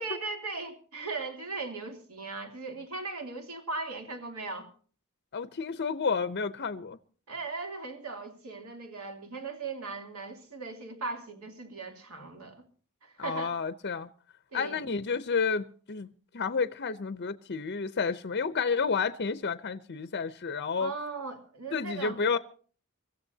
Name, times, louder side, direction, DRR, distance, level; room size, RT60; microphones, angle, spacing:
voice 1, 0.0-4.7 7.3-12.7 13.0-13.5 14.5-14.8 20.8-22.2, right 3 dB, 70° right, 3.1 m, -38 dB
voice 2, 5.3-7.0 13.2-14.1 14.5-16.1 16.3-20.9 21.7-22.4, left 5 dB, 50° left, 0.7 m, -30 dB
25.0 x 15.0 x 2.8 m
head